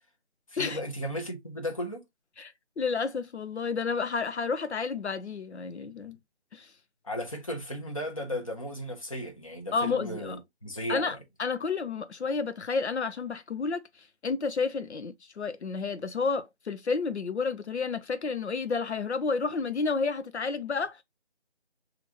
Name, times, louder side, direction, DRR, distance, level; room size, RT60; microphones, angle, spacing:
voice 1, 0.5-2.0 7.0-11.2, equal, 30° left, 1.0 m, -35 dB
voice 2, 2.4-6.2 6.5-6.7 9.7-10.4 10.9-21.0, left 4 dB, 80° left, 0.5 m, -31 dB
5.8 x 2.5 x 2.8 m
figure-of-eight pair, 165°, 33 cm